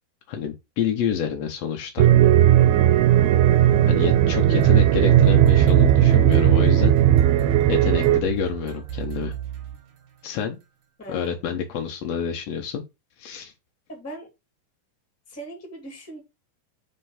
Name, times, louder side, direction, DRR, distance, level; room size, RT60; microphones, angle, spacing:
voice 1, 0.3-2.1 3.9-6.9 7.7-9.3 10.2-10.6 11.1-12.8 13.2-13.5, left 7 dB, 85° left, 1.5 m, -28 dB
sound 1, 2.0-8.2, right 11 dB, 85° right, 2.5 m, -16 dB
voice 2, 3.2-4.1 11.0-11.4 13.9-14.3 15.3-16.2, equal, 5° left, 1.6 m, -39 dB
sound 2, 4.6-10.3, right 11 dB, 65° right, 1.4 m, -34 dB
4.4 x 4.4 x 5.7 m
omnidirectional pair, 4.3 m